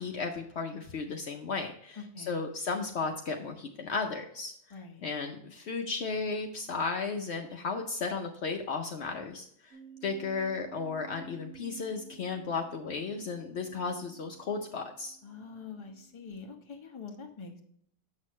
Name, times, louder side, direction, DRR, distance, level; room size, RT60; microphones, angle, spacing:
voice 1, 0.0-15.2, left 4 dB, 60° left, 4 dB, 0.9 m, -35 dB
voice 2, 4.7-5.1 15.2-17.6, left 5 dB, 25° left, 3 dB, 0.8 m, -45 dB
sound 1, 9.7-16.7, right 9 dB, 60° right, 1.6 m, -54 dB
7.4 x 6.2 x 3.1 m, 0.69 s
omnidirectional pair, 1.4 m